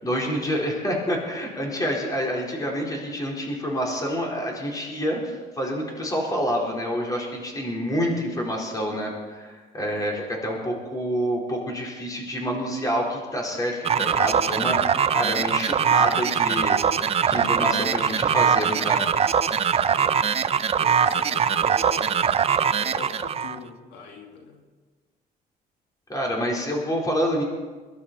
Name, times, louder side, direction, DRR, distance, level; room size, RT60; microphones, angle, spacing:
voice 1, 0.0-16.8 17.3-19.0 26.1-27.4, equal, 20° left, -1 dB, 4.4 m, -27 dB
sound 1, 13.8-23.6, right 7 dB, 35° right, 0.6 m, -22 dB
voice 2, 20.8-22.1 22.8-24.6, left 4 dB, 85° left, 1 dB, 2.3 m, -42 dB
22.5 x 11.5 x 4.3 m, 1.4 s
cardioid pair, 110°, 17 cm